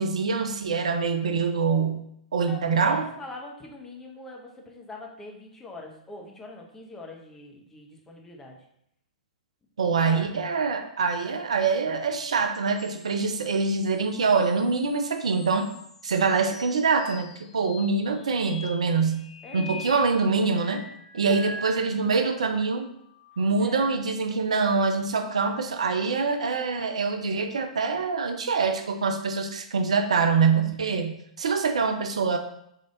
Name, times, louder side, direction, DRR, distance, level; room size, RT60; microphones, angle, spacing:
voice 1, 0.0-2.0 2.3-3.1 9.8-15.7 16.0-19.2 19.5-20.8 21.1-22.9 23.4-32.4, right 4 dB, 65° right, 6 dB, 0.5 m, -25 dB
voice 2, 2.4-8.6 10.0-10.3 19.4-19.9 20.3-20.6 21.1-22.3 23.6-23.9, left 2 dB, 10° left, 0 dB, 0.8 m, -43 dB
sound 1, 12.8-22.3 22.8-24.1 25.9-27.1, left 1 dB, 45° left, 0.6 m, -46 dB
3.8 x 3.3 x 3.8 m, 0.73 s
figure-of-eight pair, 110°, 4 cm